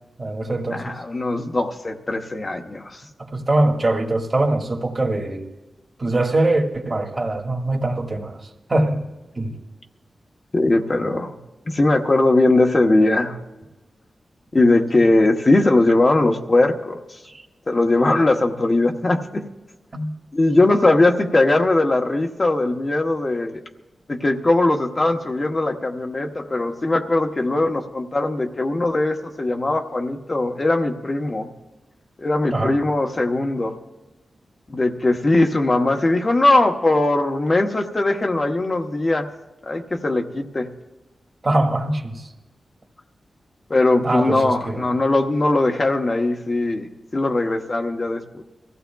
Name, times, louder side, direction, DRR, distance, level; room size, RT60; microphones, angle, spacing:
voice 1, 0.2-1.0 3.2-5.5 6.0-9.1 9.3-9.6 17.3-17.4 19.9-20.1 32.5-32.8 41.4-42.3 44.0-44.9, right 2 dB, 35° right, 1 dB, 1.6 m, -23 dB
voice 2, 0.7-3.0 10.5-11.4 11.7-13.4 14.5-17.2 17.7-19.5 20.3-23.6 24.1-31.5 32.2-33.8 34.7-39.3 39.6-40.7 43.7-48.4, left 2 dB, 35° left, 3 dB, 0.9 m, -20 dB
23.5 x 15.0 x 2.3 m, 1.1 s
wide cardioid pair, 95°, 0 cm